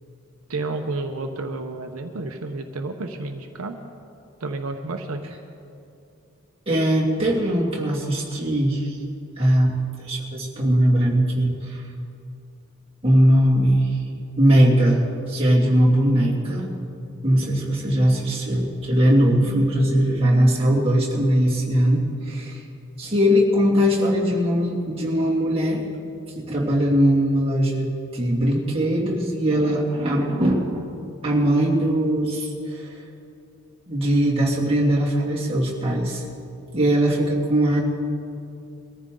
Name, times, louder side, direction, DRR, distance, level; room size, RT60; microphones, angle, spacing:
voice 1, 0.5-3.8 4.4-5.3, right 2 dB, 85° right, 4 dB, 1.0 m, -30 dB
voice 2, 6.7-9.0 9.4-9.7 10.0-11.8 13.0-13.9 14.4-16.8 17.2-22.6 23.0-25.8 26.4-30.8 31.2-32.9 33.9-36.2 36.7-37.8, equal, 25° right, -5 dB, 2.5 m, -20 dB
22.5 x 14.5 x 3.8 m, 2.6 s
head